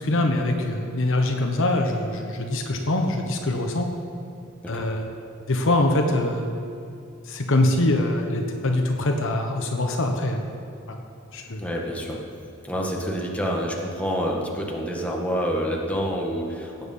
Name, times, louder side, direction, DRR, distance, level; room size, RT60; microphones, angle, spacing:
voice 1, 0.0-3.9 4.7-5.1 5.5-6.5 7.3-10.5 10.9-11.0 11.3-11.6, left 1 dB, 65° left, 3 dB, 1.2 m, -23 dB
voice 2, 11.6-12.2 12.6-16.8, equal, 5° left, -2 dB, 1.7 m, -27 dB
16.5 x 9.2 x 5.6 m, 2.5 s
head